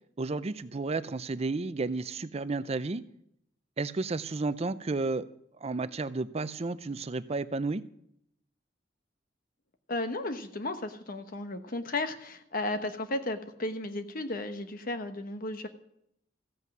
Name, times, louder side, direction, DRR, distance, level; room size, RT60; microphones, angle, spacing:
voice 1, 0.2-3.0 3.8-5.3 5.6-7.8, right 3 dB, 35° right, 14 dB, 0.5 m, -32 dB
voice 2, 9.9-15.7, left 2 dB, 50° left, 8 dB, 1.0 m, -34 dB
14.5 x 8.2 x 6.0 m, 0.74 s
head